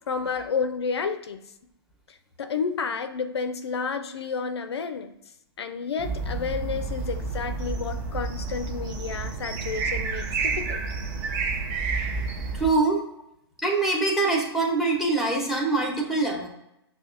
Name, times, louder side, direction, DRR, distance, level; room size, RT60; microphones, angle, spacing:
voice 1, 0.1-1.4 2.1-5.1 5.6-10.8, left 5 dB, 80° left, 9 dB, 0.4 m, -31 dB
sound 1, 6.0-12.7, right 4 dB, 30° right, 0.7 m, -30 dB
voice 2, 12.5-13.0 13.6-16.5, right 3 dB, ahead, -1 dB, 0.9 m, -24 dB
5.7 x 2.3 x 2.5 m, 0.81 s
hypercardioid pair, 125°, 14 cm